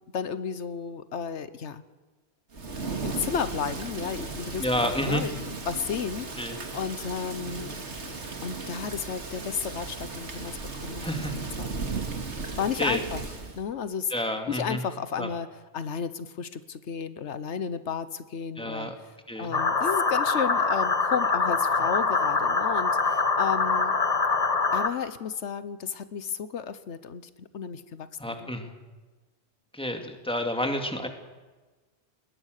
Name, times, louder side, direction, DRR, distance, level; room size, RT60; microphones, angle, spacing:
voice 1, 0.1-1.8 3.0-6.3 6.7-7.7 8.4-11.1 11.6-11.8 12.6-13.2 13.6-14.1 14.5-15.5 15.7-18.9 19.4-23.9 24.7-28.5, left 7 dB, 90° left, 13 dB, 1.3 m, -33 dB
Thunder / Rain, 2.5-13.6, right 3 dB, 85° right, 2.5 m, -36 dB
voice 2, 4.6-5.2 6.4-6.5 11.0-11.4 11.9-12.0 12.8-13.0 14.1-14.8 15.2-15.3 18.6-18.9 19.3-19.6 28.2-28.7 29.7-31.1, equal, 5° left, 4 dB, 2.3 m, -30 dB
sound 1, 19.5-24.9, left 4 dB, 35° left, 1.1 m, -24 dB
20.5 x 20.5 x 6.6 m, 1.3 s
omnidirectional pair, 1.1 m